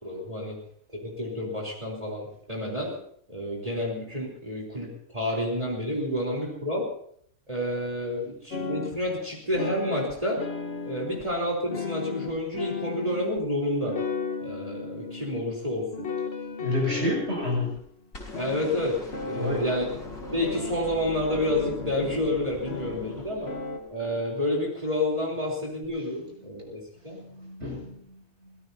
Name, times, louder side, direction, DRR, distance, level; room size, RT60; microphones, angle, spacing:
voice 1, 0.0-0.6 0.9-3.0 3.3-6.9 7.5-10.4 10.9-13.9 14.4-16.1 16.8-17.1 18.4-19.9 20.3-23.5 23.9-27.2, left 1 dB, 25° right, -3 dB, 3.8 m, -29 dB
sound 1, 8.5-9.1 9.5-11.4 11.7-13.4 13.9-15.6 15.9-17.8 18.3-21.0 21.3-22.2 22.7-23.8, left 5 dB, 50° left, 1.5 m, -35 dB
voice 2, 16.6-17.8 19.3-19.6 27.1-28.6, left 1 dB, 50° right, -1 dB, 7.6 m, -30 dB
sound 2, 18.1-24.3 25.8-25.9, left 2 dB, 70° left, 4.6 m, -42 dB
24.0 x 18.5 x 2.8 m, 0.64 s
omnidirectional pair, 1.5 m